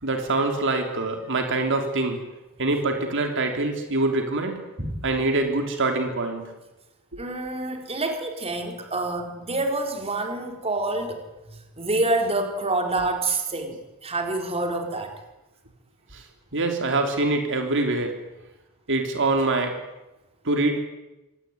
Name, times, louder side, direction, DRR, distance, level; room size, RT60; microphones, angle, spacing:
voice 1, 0.0-2.2 2.6-4.6 5.0-6.5 16.1-16.2 16.5-18.2 18.9-19.8 20.5-20.8, right 2 dB, 60° right, 4 dB, 3.5 m, -24 dB
voice 2, 7.2-11.2 11.5-15.1, right 2 dB, 30° right, 4 dB, 4.4 m, -27 dB
26.5 x 19.0 x 9.9 m, 1.0 s
head